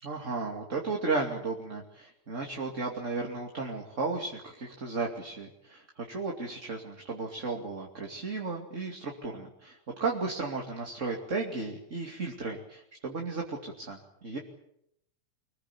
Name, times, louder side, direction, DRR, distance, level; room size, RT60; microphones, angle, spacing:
voice 1, 0.0-14.4, right 3 dB, 25° right, 0 dB, 2.7 m, -34 dB
26.0 x 21.0 x 8.7 m, 0.75 s
omnidirectional pair, 3.3 m